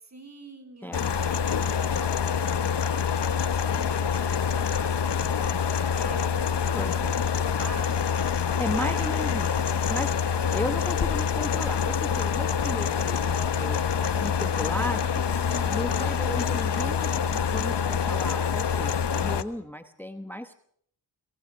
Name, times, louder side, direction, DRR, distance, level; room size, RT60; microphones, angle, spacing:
voice 1, 0.1-3.4 3.6-6.8 7.4-8.3 8.7-9.1 10.3-10.7 15.8-16.2, right 3 dB, 40° right, 6 dB, 3.9 m, -45 dB
sound 1, 0.9-19.4, left 7 dB, 75° left, 1.2 m, -26 dB
voice 2, 6.7-7.2 8.6-13.8 14.2-15.3 15.7-20.6, left 1 dB, 5° left, 9 dB, 1.0 m, -35 dB
sound 2, 14.5-17.4, left 5 dB, 20° left, 1.9 m, -44 dB
22.5 x 19.0 x 6.2 m, 0.66 s
wide cardioid pair, 80°, 42 cm